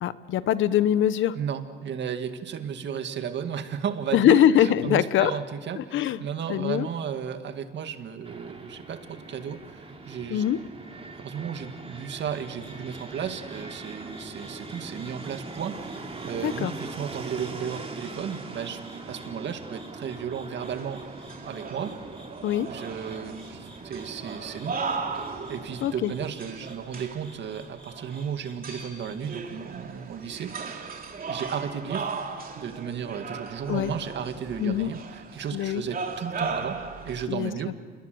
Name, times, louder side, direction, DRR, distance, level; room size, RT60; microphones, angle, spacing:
voice 1, 0.0-1.3 4.1-5.3 5.8-6.2 6.5-6.9 10.3-10.6 16.4-16.7 22.4-22.7 25.8-26.1 33.7-33.9 34.6-34.9 35.5-35.8 37.3-37.5, left 10 dB, 75° left, 15 dB, 0.9 m, -22 dB
voice 2, 1.3-10.4 11.0-18.8 19.1-21.0 21.5-21.9 22.7-24.8 25.5-30.9 31.3-32.1 32.6-36.8 37.0-37.8, right 7 dB, 65° right, 7 dB, 2.1 m, -34 dB
Fixed-wing aircraft airplane, 8.2-26.2, right 3 dB, 30° right, 3.4 m, -42 dB
sound 1, 12.1-29.4, equal, 5° left, 6.6 m, -54 dB
sound 2, 20.6-37.2, right 4 dB, 45° right, 2.9 m, -37 dB
27.5 x 21.0 x 7.9 m, 1.5 s
cardioid pair, 90°, 20 cm